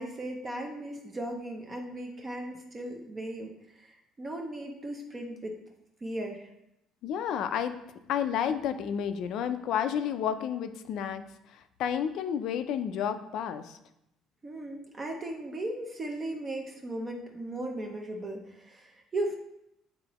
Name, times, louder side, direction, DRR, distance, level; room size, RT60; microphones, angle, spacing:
voice 1, 0.0-5.6 6.0-6.5 14.4-19.3, right 1 dB, 20° right, 2 dB, 0.6 m, -37 dB
voice 2, 7.0-7.7 8.1-11.2 11.8-13.8, left 8 dB, 55° left, 10 dB, 0.4 m, -30 dB
8.7 x 3.8 x 3.0 m, 0.83 s
cardioid pair, 165°, 0 cm